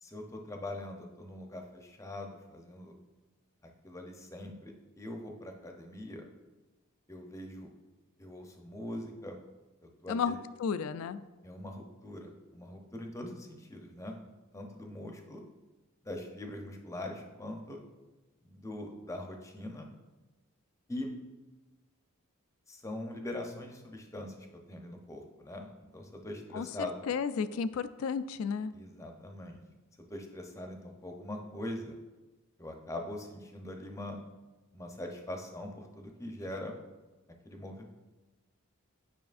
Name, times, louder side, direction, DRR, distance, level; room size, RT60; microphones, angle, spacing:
voice 1, 0.0-3.0 3.8-6.3 7.1-7.7 8.2-9.4 9.8-10.4 11.4-14.2 14.5-15.4 16.0-17.8 18.4-19.9 20.9-21.1 22.7-27.0 28.7-29.6 30.1-32.0 32.6-34.2 34.7-36.7 37.4-37.8, left 1 dB, 15° left, 3 dB, 0.6 m, -42 dB
voice 2, 10.1-11.2 26.5-26.7 27.1-28.7, left 6 dB, 70° left, 14 dB, 0.3 m, -33 dB
9.4 x 5.5 x 2.5 m, 1.2 s
head